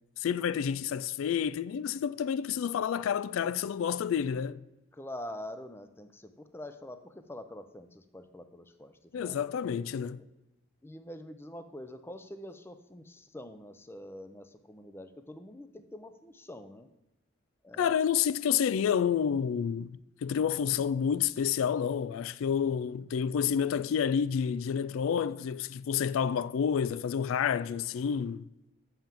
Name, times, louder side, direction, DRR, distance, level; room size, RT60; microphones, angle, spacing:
voice 1, 0.2-4.6 9.1-10.2 17.8-28.4, left 8 dB, 85° left, 0.3 m, -29 dB
voice 2, 4.9-9.4 10.0-10.1 10.8-16.9 17.6-18.0, left 1 dB, 10° left, 0.5 m, -45 dB
6.9 x 5.7 x 7.4 m
head